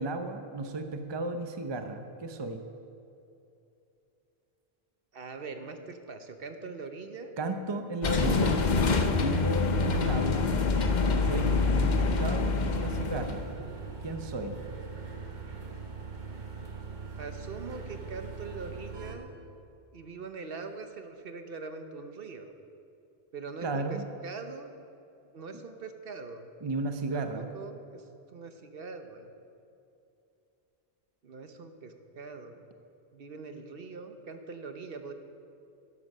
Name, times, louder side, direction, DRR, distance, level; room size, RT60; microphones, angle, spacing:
voice 1, 0.0-2.6 7.4-8.6 9.1-10.5 11.1-13.4 14.0-14.6 23.6-24.0 26.6-27.5, right 2 dB, 30° right, 7 dB, 0.7 m, -34 dB
voice 2, 5.1-7.3 17.2-19.3 19.9-22.5 23.3-24.8 25.3-26.7 27.1-28.0 28.3-29.3 31.2-32.6 33.1-35.1, right 4 dB, 60° right, 7 dB, 1.0 m, -42 dB
sound 1, 8.0-13.5, left 4 dB, 50° left, 0.8 m, -26 dB
sound 2, 8.2-19.2, right 4 dB, 45° right, 1.4 m, -41 dB
12.5 x 11.0 x 5.5 m, 2.7 s
omnidirectional pair, 1.1 m